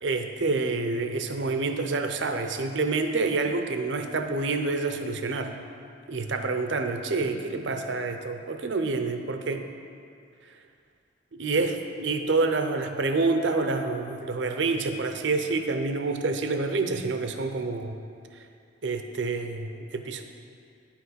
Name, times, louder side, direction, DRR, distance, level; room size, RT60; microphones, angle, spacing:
voice 1, 0.0-5.5 6.1-9.7 10.4-10.6 11.4-11.7 12.0-18.0 18.3-18.5 18.8-20.2, right 3 dB, 70° right, 6 dB, 0.7 m, -27 dB
10.0 x 5.9 x 5.8 m, 2.4 s
head